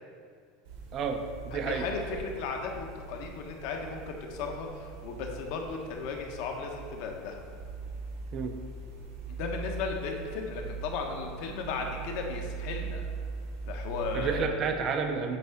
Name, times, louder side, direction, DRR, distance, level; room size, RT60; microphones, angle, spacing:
sound 1, 0.7-14.4, right 5 dB, 70° right, 1.6 m, -41 dB
voice 1, 0.9-1.9 8.3-8.5 14.1-15.4, right 5 dB, 30° right, 6 dB, 0.5 m, -30 dB
voice 2, 1.5-7.4 9.3-13.0 13.7-14.6, left 5 dB, 55° left, 2 dB, 1.0 m, -36 dB
8.3 x 3.6 x 5.7 m, 2.1 s
supercardioid pair, 170°, 0 cm